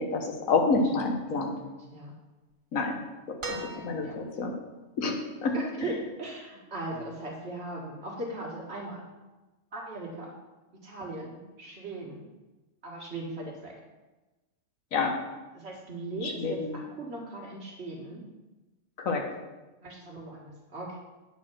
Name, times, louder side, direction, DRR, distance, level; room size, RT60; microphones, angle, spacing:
voice 1, 0.0-1.5 2.7-3.0 3.5-3.6 3.8-4.5 5.0-5.6 14.9-15.1 16.2-16.8 19.0-19.2, left 4 dB, 80° left, 3 dB, 1.5 m, -28 dB
voice 2, 1.5-2.1 3.4-4.2 5.5-9.0 9.7-10.3 10.7-12.2 12.8-13.8 15.6-18.2 19.8-21.0, right 2 dB, 50° right, -1 dB, 1.8 m, -39 dB
sound 1, 3.4-4.4 5.9-6.0, right 2 dB, 70° right, 1.9 m, -39 dB
8.9 x 4.3 x 6.0 m, 1.1 s
omnidirectional pair, 1.4 m